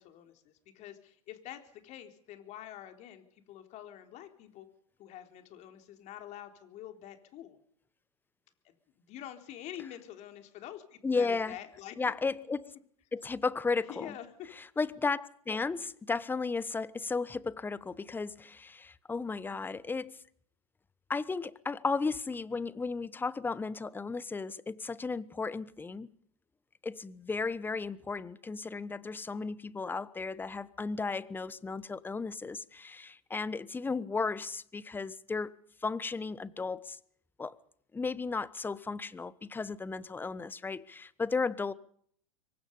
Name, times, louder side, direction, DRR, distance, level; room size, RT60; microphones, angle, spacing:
voice 1, 0.0-4.7 5.0-7.6 8.6-12.0 13.8-14.5, left 11 dB, 40° left, 3.8 m, -47 dB
voice 2, 11.0-11.6 12.0-12.7 13.1-14.1 14.6-20.2 21.1-26.1 26.8-35.5 35.8-37.0 37.4-37.6 37.9-41.7, left 4 dB, 10° left, 1.1 m, -34 dB
26.0 x 23.5 x 5.5 m
hypercardioid pair, 100°, 19 cm